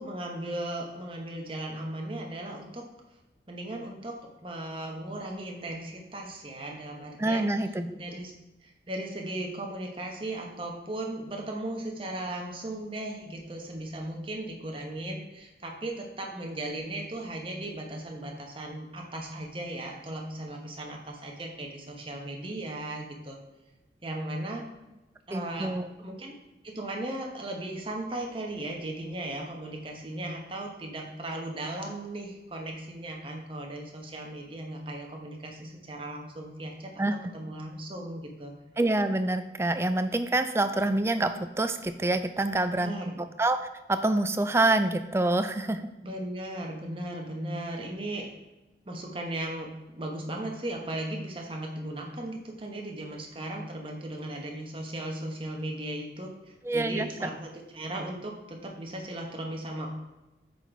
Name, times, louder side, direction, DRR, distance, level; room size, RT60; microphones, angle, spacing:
voice 1, 0.0-2.9 3.5-4.1 4.4-7.5 7.9-8.3 8.6-23.4 24.0-24.6 25.3-26.4 26.6-37.0 37.3-38.5 42.8-43.2 46.0-48.3 48.8-59.9, right 1 dB, 30° right, 1 dB, 1.2 m, -37 dB
voice 2, 7.2-7.9 25.3-25.9 37.0-37.2 38.8-43.6 43.9-45.8 56.6-57.3, right 2 dB, 15° right, 9 dB, 0.4 m, -26 dB
8.4 x 4.1 x 4.5 m, 1.0 s
head